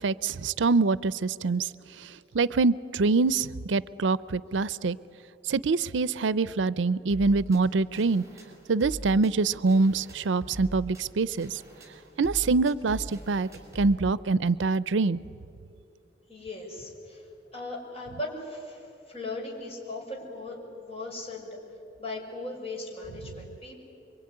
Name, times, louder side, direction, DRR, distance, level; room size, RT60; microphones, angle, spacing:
voice 1, 0.0-1.7 2.0-5.0 5.5-8.2 8.7-11.6 12.2-13.5 13.8-15.2, right 3 dB, 75° right, 19 dB, 0.5 m, -25 dB
sound 1, 7.1-14.0, equal, 15° right, 5.6 m, -43 dB
voice 2, 16.3-17.3 17.5-21.5 22.0-23.8, left 2 dB, 35° left, 0 dB, 5.9 m, -38 dB
25.5 x 24.0 x 9.7 m, 2.7 s
head